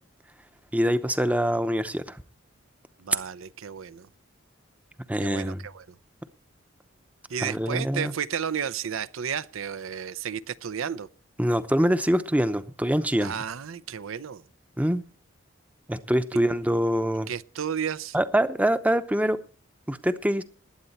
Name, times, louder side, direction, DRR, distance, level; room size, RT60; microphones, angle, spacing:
voice 1, 0.7-2.2 5.1-5.6 7.4-8.1 11.4-13.3 14.8-15.0 15.9-17.3 18.1-19.4 19.9-20.4, equal, 5° right, 0.7 m, -24 dB
voice 2, 3.0-4.1 5.2-6.0 7.3-11.1 13.2-14.4 17.3-18.2, right 7 dB, 80° right, 0.6 m, -32 dB
20.0 x 9.1 x 4.2 m
head